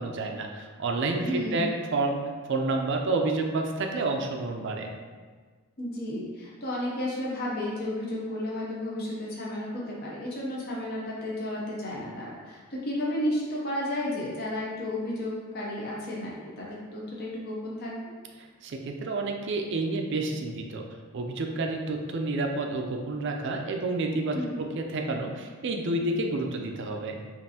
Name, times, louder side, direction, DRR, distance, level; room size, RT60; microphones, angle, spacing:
voice 1, 0.0-2.2 2.5-4.9 18.4-20.8 21.1-27.2, right 2 dB, 55° right, 3 dB, 0.4 m, -29 dB
voice 2, 1.2-1.7 5.8-18.0 24.3-24.6, left 1 dB, 45° left, -5 dB, 0.7 m, -32 dB
5.2 x 2.6 x 2.8 m, 1.5 s
head